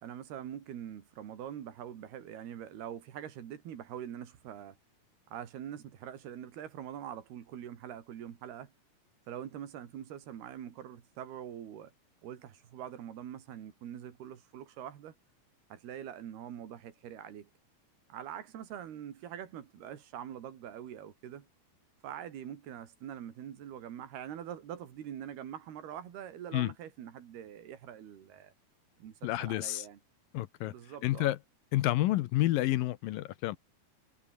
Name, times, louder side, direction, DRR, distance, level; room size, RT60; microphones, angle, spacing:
voice 1, 0.0-4.8 5.3-8.7 9.3-11.9 12.2-15.1 15.7-17.5 18.1-21.5 22.0-28.5 29.0-30.0 30.7-31.3, right 10 dB, 85° right, 4.4 m, -44 dB
voice 2, 29.2-29.8 30.3-30.7 31.0-31.4 31.7-33.6, left 16 dB, 75° left, 2.4 m, -29 dB
omnidirectional pair, 4.4 m